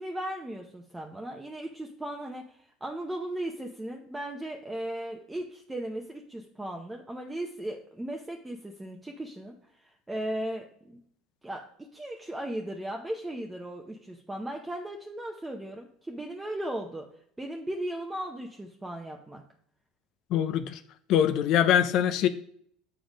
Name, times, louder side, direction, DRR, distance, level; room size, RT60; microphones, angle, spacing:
voice 1, 0.0-11.0 11.4-17.1 17.4-19.4, right 1 dB, 10° right, 2 dB, 0.7 m, -37 dB
voice 2, 20.3-20.8 21.1-22.3, left 10 dB, 60° left, 10 dB, 0.4 m, -23 dB
7.1 x 3.8 x 5.1 m, 0.66 s
supercardioid pair, 110°, 0 cm